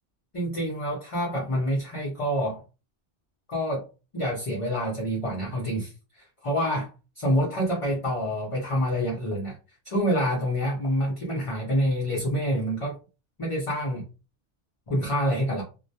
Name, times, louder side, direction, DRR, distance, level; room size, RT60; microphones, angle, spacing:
voice 1, 0.3-2.6 3.5-3.8 4.1-6.9 7.2-9.6 9.9-13.0 13.4-14.1 14.9-15.6, equal, 40° left, -3 dB, 0.5 m, -27 dB
2.2 x 2.1 x 2.7 m, 0.32 s
omnidirectional pair, 1.2 m